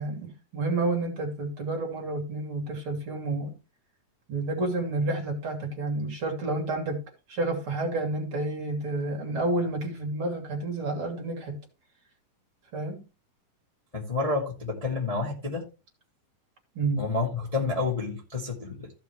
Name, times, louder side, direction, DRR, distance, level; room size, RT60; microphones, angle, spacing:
voice 1, 0.0-3.5 4.3-7.0 7.3-11.6 12.7-13.0 16.7-17.0, right 2 dB, 40° right, 3.1 m, -30 dB
voice 2, 13.9-15.6 17.0-18.9, left 3 dB, 15° left, 1.8 m, -29 dB
15.5 x 5.8 x 3.2 m
omnidirectional pair, 3.8 m